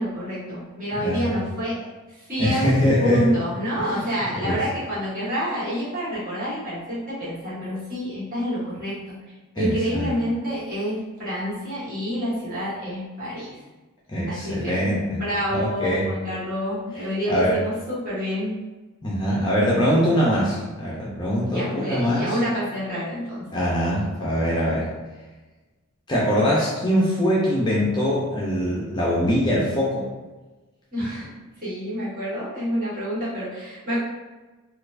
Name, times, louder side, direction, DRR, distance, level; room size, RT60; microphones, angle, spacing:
voice 1, 0.0-1.8 2.2-9.1 9.5-13.6 14.3-18.6 21.4-23.4 30.9-31.3 31.6-34.0, equal, 40° right, -10 dB, 1.5 m, -28 dB
voice 2, 0.9-1.4 2.4-3.3 3.8-3.9 4.3-4.6 9.6-10.1 14.1-15.2 15.5-16.0 17.3-17.6 19.0-22.4 23.5-24.9 26.1-30.1, equal, 20° left, -6 dB, 0.5 m, -22 dB
4.2 x 2.4 x 2.5 m, 1.2 s
head